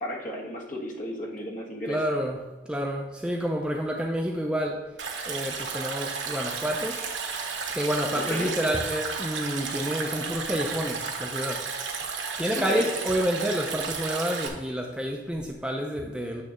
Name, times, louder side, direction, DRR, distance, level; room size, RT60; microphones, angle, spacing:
voice 1, 0.0-2.1 8.1-8.5 12.5-12.9, left 1 dB, 45° left, -2 dB, 1.5 m, -34 dB
voice 2, 1.9-4.8 5.2-7.0 7.7-11.7 12.4-16.4, equal, 5° right, 0 dB, 0.5 m, -29 dB
Stream, 5.0-14.5, right 5 dB, 80° right, 1.2 m, -33 dB
8.5 x 3.2 x 6.3 m, 1.1 s
head